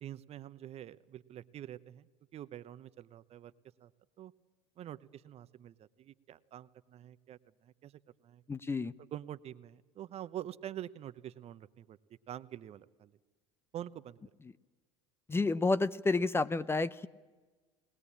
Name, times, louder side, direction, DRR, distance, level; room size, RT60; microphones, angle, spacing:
voice 1, 0.0-2.1 2.3-3.5 3.8-3.9 4.2-4.3 4.8-8.4 9.1-12.0 12.3-13.1 13.7-14.2, right 11 dB, 40° right, 14 dB, 0.9 m, -46 dB
voice 2, 8.5-8.9 15.3-17.1, left 3 dB, 15° left, 14 dB, 0.6 m, -30 dB
20.5 x 19.5 x 8.6 m, 1.3 s
hypercardioid pair, 80°, 16 cm